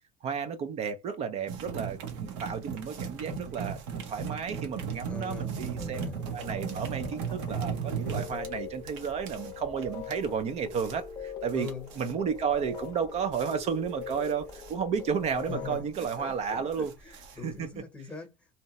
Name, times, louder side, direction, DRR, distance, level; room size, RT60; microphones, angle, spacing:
voice 1, 0.2-3.8 4.0-6.0 6.3-11.7 12.0-16.9 17.4-17.7, right 6 dB, 45° right, 0.5 m, -32 dB
sound 1, 1.5-17.8, right 6 dB, 85° right, 0.9 m, -38 dB
voice 2, 5.0-6.2 8.0-8.4 11.5-11.9 15.5-18.5, left 4 dB, 5° left, 0.9 m, -42 dB
sound 2, 6.2-15.8, left 6 dB, 25° left, 0.6 m, -43 dB
2.7 x 2.1 x 2.8 m
cardioid pair, 125°, 16 cm